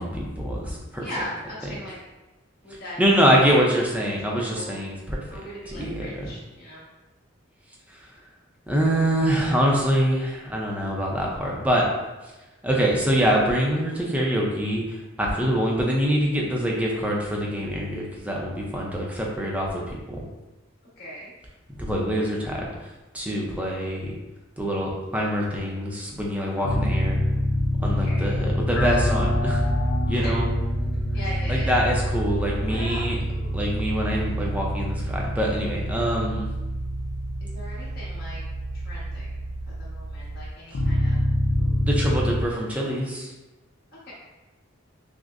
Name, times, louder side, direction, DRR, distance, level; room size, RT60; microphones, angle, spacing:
voice 1, 0.0-1.0 3.0-5.2 5.7-6.3 8.7-11.9 12.6-19.8 20.1-20.2 21.8-22.7 23.1-24.1 24.6-27.2 27.8-29.7 30.1-30.5 31.5-33.2 33.5-36.5 41.8-43.3, equal, 5° right, -3 dB, 0.5 m, -24 dB
voice 2, 1.0-2.0 2.6-3.0 4.1-4.8 5.3-6.9 21.0-21.3 28.0-28.3 30.1-30.3 31.1-31.7 32.6-33.7 37.4-38.4 38.7-41.2 41.6-41.8 44.0-44.1, left 1 dB, 50° left, -8 dB, 1.3 m, -39 dB
sound 1, 26.6-42.4, equal, 85° left, 0.5 m, -26 dB
6.0 x 2.1 x 2.5 m, 1.1 s
head